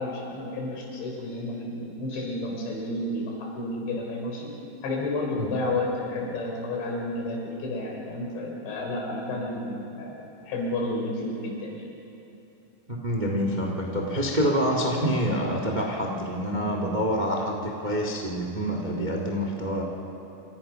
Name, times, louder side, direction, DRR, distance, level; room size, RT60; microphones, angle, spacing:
voice 1, 0.0-4.5 4.8-11.8, left 2 dB, 85° left, 0 dB, 6.1 m, -31 dB
voice 2, 12.9-19.8, equal, 85° right, 1 dB, 0.4 m, -27 dB
27.0 x 25.0 x 5.7 m, 2.9 s
omnidirectional pair, 5.0 m